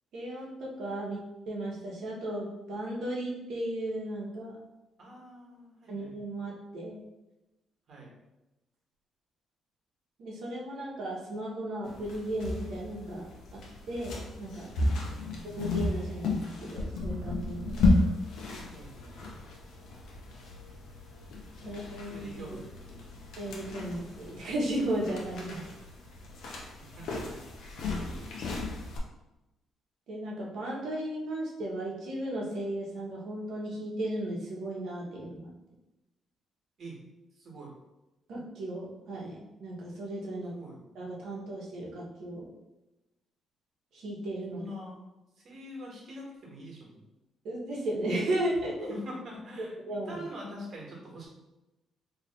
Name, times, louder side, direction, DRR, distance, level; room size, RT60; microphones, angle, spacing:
voice 1, 0.1-1.2 1.5-4.5 5.9-7.0 10.2-13.2 13.5-13.6 13.9-14.7 15.6-17.7 21.6-22.6 23.4-25.6 30.1-35.5 38.3-40.5 40.9-42.5 43.9-44.6 47.4-48.9 49.9-50.2, right 1 dB, 75° right, -3 dB, 1.1 m, -35 dB
voice 2, 5.0-6.1 7.9-8.1 15.0-15.5 18.0-18.1 18.7-19.2 21.6-23.2 26.8-27.4 27.7-28.5 36.8-37.0 37.4-37.7 40.4-40.8 44.5-45.0 45.4-47.0 48.9-51.3, equal, 55° right, -2 dB, 1.4 m, -45 dB
sound 1, 11.8-29.0, left 2 dB, 80° left, 0.7 m, -33 dB
3.0 x 2.6 x 4.3 m, 0.98 s
cardioid pair, 90°, 0 cm